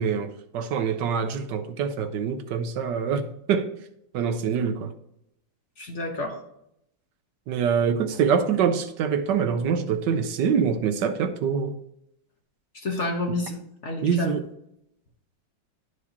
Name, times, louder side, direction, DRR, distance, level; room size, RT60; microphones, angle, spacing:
voice 1, 0.0-3.7 4.1-4.9 7.5-11.8 14.0-14.4, right 7 dB, 75° right, 1.3 m, -25 dB
voice 2, 5.8-6.4 12.7-14.3, left 2 dB, 45° left, 1.2 m, -30 dB
11.0 x 4.8 x 2.9 m
omnidirectional pair, 2.0 m